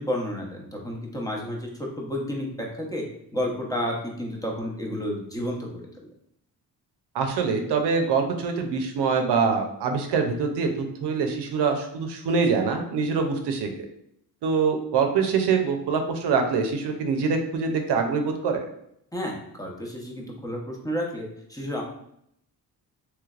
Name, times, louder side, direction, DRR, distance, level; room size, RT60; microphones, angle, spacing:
voice 1, 0.0-3.0 3.3-5.9 19.1-21.8, equal, 10° left, -1 dB, 0.8 m, -31 dB
voice 2, 7.1-13.9 14.4-18.6, right 5 dB, 85° right, 4 dB, 0.6 m, -24 dB
3.2 x 3.1 x 2.4 m, 0.73 s
cardioid pair, 80°, 40 cm